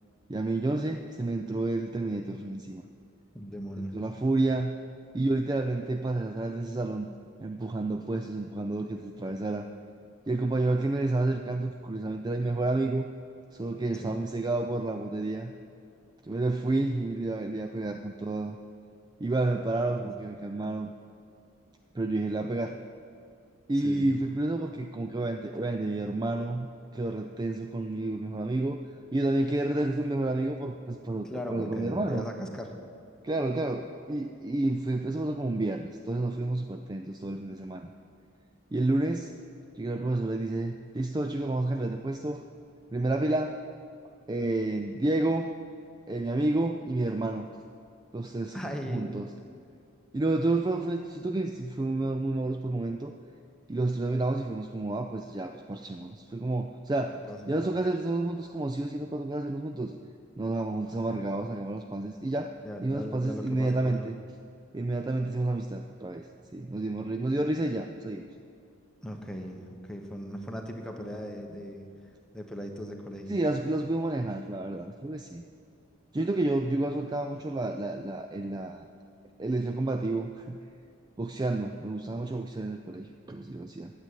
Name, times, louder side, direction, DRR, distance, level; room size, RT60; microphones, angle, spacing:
voice 1, 0.3-2.8 3.9-4.7 5.1-7.1 7.4-9.7 10.3-13.1 13.5-15.5 16.2-18.6 19.2-20.9 21.9-22.8 23.7-26.7 26.9-28.8 29.1-32.3 33.2-37.9 38.7-39.3 39.7-42.4 42.9-43.6 44.0-45.5 46.1-47.5 48.1-48.6 48.9-49.4 50.1-53.1 53.7-59.9 60.4-62.5 62.8-64.2 64.7-66.3 66.5-68.3 73.3-75.4 76.1-78.9 79.4-80.6 81.2-83.9, right 2 dB, 20° right, 5 dB, 0.3 m, -30 dB
voice 2, 3.3-3.9 14.0-14.2 20.0-20.1 23.8-24.1 31.2-32.7 48.5-49.1 57.3-57.5 62.6-64.1 69.0-71.9 72.3-73.4, equal, 5° left, 2 dB, 1.0 m, -38 dB
9.1 x 8.3 x 9.2 m, 2.4 s
head